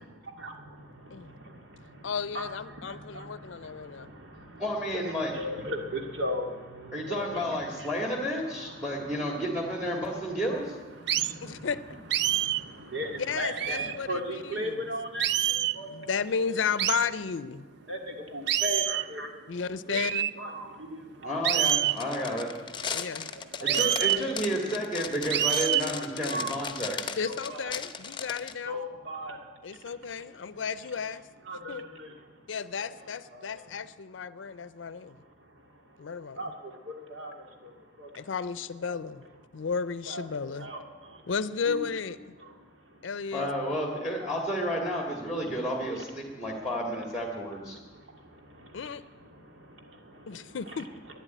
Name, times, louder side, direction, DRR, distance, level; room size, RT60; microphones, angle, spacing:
voice 1, 0.0-7.9 8.3-9.4 9.7-9.8 10.1-10.4 11.0-11.7 12.2-16.2 17.9-20.0 20.4-21.7 22.0-22.5 22.9-24.3 24.6-24.7 24.9-25.1 25.7-25.9 26.2-26.7 27.3-27.7 28.1-28.2 28.6-29.4 29.9-30.3 31.4-32.4 32.8-32.9 33.3-33.5 34.8-38.3 38.8-39.0 39.5-39.7 40.1-41.3 41.6-41.8 42.4-43.1 44.7-44.9 45.3-45.4 46.4-47.0 47.8-50.8, equal, 85° right, 3 dB, 2.3 m, -39 dB
voice 2, 2.0-4.1 11.4-11.8 13.2-14.9 15.9-17.7 19.5-20.3 22.9-23.3 27.2-28.8 29.6-31.2 31.7-31.9 32.5-35.1 36.0-36.4 38.1-39.3 39.5-40.7 41.3-42.2 43.0-43.5 48.7-49.0 50.3-50.9, left 6 dB, 90° left, 15 dB, 0.5 m, -33 dB
voice 3, 4.6-5.3 6.9-10.8 21.2-22.5 23.6-27.1 43.3-47.8, equal, 5° right, 0 dB, 1.9 m, -31 dB
sound 1, 11.1-11.4 12.1-12.7 13.6-14.0 15.2-15.8 16.8-17.1 18.5-19.1 19.9-20.3 21.4-22.0 23.7-24.2 25.3-25.9, right 12 dB, 60° right, 0.4 m, -26 dB
sound 2, 21.6-28.5, left 6 dB, 25° left, 0.7 m, -37 dB
12.5 x 10.5 x 9.1 m, 1.3 s
head